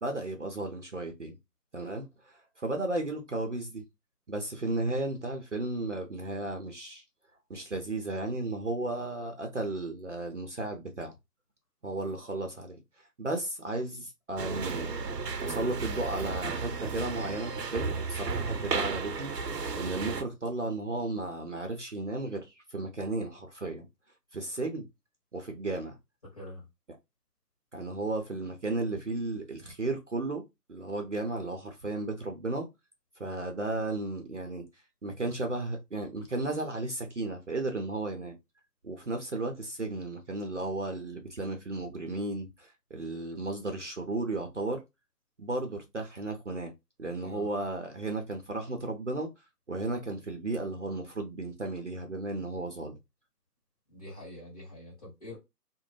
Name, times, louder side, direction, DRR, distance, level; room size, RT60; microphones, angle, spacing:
voice 1, 0.0-1.4 1.7-3.8 4.3-7.0 7.5-11.1 11.8-12.8 13.2-15.0 15.4-19.3 19.7-23.9 24.3-24.9 25.3-26.0 27.7-30.4 30.7-32.7 33.2-34.6 35.0-38.4 38.8-44.8 45.4-46.7 47.0-49.3 49.7-53.0, right 2 dB, 50° right, 0.6 m, -34 dB
sound 1, 14.4-20.2, right 4 dB, 85° right, 0.7 m, -33 dB
voice 2, 26.3-26.7 47.2-47.5 53.9-55.4, left 1 dB, 25° left, 1.2 m, -45 dB
2.5 x 2.0 x 3.2 m
figure-of-eight pair, 165°, 48 cm